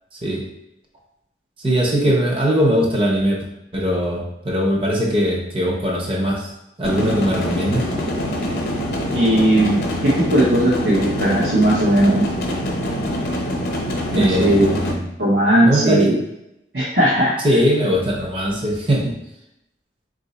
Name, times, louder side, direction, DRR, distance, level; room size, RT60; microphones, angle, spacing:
voice 1, 1.6-3.4 3.7-6.5 6.8-7.9 14.1-15.0 15.6-16.1 17.4-19.2, equal, 30° right, -1 dB, 0.8 m, -20 dB
sound 1, 6.8-14.9, equal, 55° left, 0.8 m, -24 dB
voice 2, 9.1-12.2 14.1-14.7 15.2-16.2 16.7-17.3, right 1 dB, 70° right, -7 dB, 0.9 m, -17 dB
4.1 x 2.6 x 4.0 m, 0.87 s
head